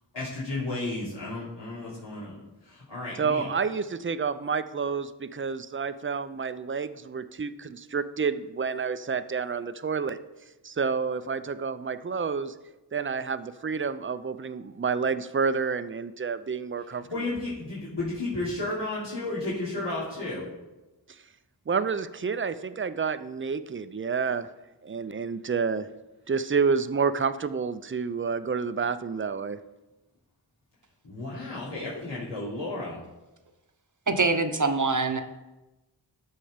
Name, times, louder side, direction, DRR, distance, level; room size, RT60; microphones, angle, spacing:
voice 1, 0.1-2.3 2.6-3.5 17.1-20.5 31.0-33.0, left 2 dB, 75° left, -10 dB, 3.1 m, -33 dB
voice 2, 3.2-10.2 10.6-12.5 12.9-17.3 21.7-24.5 24.8-25.9 26.3-29.6, right 5 dB, 30° right, 13 dB, 0.5 m, -29 dB
voice 3, 34.1-35.2, right 3 dB, 45° right, 7 dB, 0.9 m, -24 dB
12.5 x 4.5 x 5.0 m, 1.0 s
wide cardioid pair, 45°, 43 cm